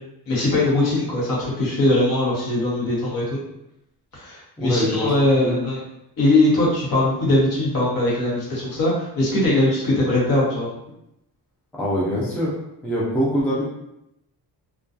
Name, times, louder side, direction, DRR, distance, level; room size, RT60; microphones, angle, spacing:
voice 1, 0.3-3.4 4.1-5.8 6.2-10.7, left 1 dB, 55° left, -5 dB, 1.0 m, -20 dB
voice 2, 4.6-5.6 11.7-12.5 12.8-13.6, equal, 5° left, -6 dB, 0.3 m, -23 dB
2.3 x 2.2 x 2.5 m, 0.83 s
cardioid pair, 160°, 41 cm